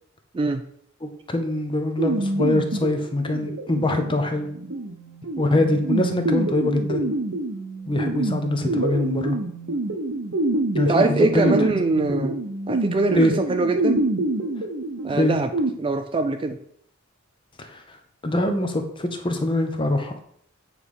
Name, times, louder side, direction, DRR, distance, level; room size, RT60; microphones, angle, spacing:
voice 1, 0.3-0.7 10.9-12.4 12.7-14.1 15.0-15.5 15.8-16.6, right 3 dB, 25° right, 8 dB, 0.3 m, -23 dB
voice 2, 1.0-4.5 5.4-7.1 7.9-9.4 10.7-11.6 12.0-12.3 13.2-13.3 15.1-15.4 17.6-18.0 18.2-20.1, left 1 dB, 25° left, 6 dB, 0.7 m, -23 dB
sound 1, 2.0-15.7, right 2 dB, 60° right, 0.8 m, -27 dB
8.2 x 3.2 x 5.4 m, 0.68 s
head